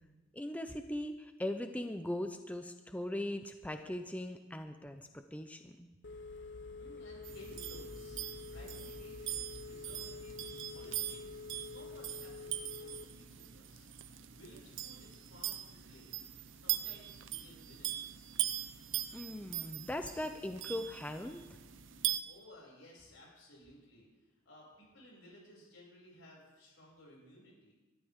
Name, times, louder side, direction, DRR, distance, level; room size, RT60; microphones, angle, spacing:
voice 1, 0.3-5.9 19.1-21.4, left 1 dB, 5° left, 7 dB, 0.5 m, -40 dB
Telephone, 6.0-13.0, left 4 dB, 60° left, 0.8 m, -47 dB
voice 2, 6.7-13.9 14.3-16.1 16.5-18.3 22.3-24.1 24.4-27.7, left 1 dB, 85° left, -3 dB, 6.2 m, -57 dB
sound 1, 7.2-22.2, right 12 dB, 70° right, 0.8 m, -41 dB
21.5 x 12.5 x 3.6 m, 1.2 s
head